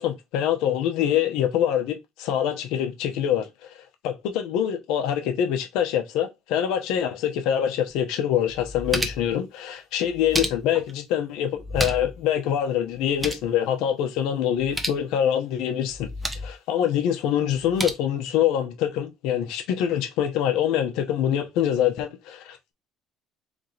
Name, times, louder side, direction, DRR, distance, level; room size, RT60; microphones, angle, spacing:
voice 1, 0.0-3.5 4.0-16.1 16.4-22.7, left 10 dB, 80° left, 0.9 m, -25 dB
sound 1, 7.9-8.0 8.5-9.4 10.0-10.9 11.5-12.2 12.5-12.6 12.9-13.5 14.5-15.0 15.9-16.5 17.5-17.9, equal, 10° right, 0.7 m, -31 dB
4.0 x 3.5 x 3.3 m
cardioid pair, 145°, 0 cm